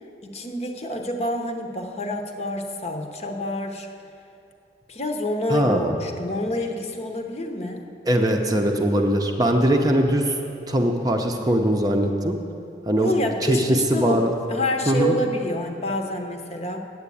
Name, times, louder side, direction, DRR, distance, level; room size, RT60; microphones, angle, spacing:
voice 1, 0.3-3.9 4.9-7.9 13.0-16.8, left 1 dB, 35° left, 4 dB, 0.8 m, -28 dB
voice 2, 5.5-6.0 8.1-10.4 10.7-12.3 12.9-13.1 13.4-14.3 14.9-15.2, right 1 dB, 20° right, 3 dB, 0.6 m, -21 dB
9.5 x 7.9 x 8.5 m, 2.7 s
head